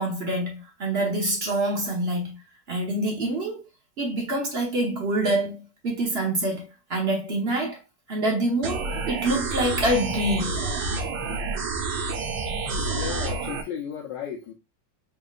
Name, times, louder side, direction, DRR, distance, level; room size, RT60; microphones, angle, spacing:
voice 1, 0.0-2.4 2.7-3.6 4.0-6.6 6.9-7.8 8.1-10.6, right 1 dB, 45° right, 0.9 m, -26 dB
sound 1, 8.6-13.6, right 3 dB, 85° right, 1.5 m, -29 dB
voice 2, 12.9-14.5, left 8 dB, 75° left, 1.4 m, -34 dB
3.8 x 3.7 x 2.4 m
omnidirectional pair, 2.0 m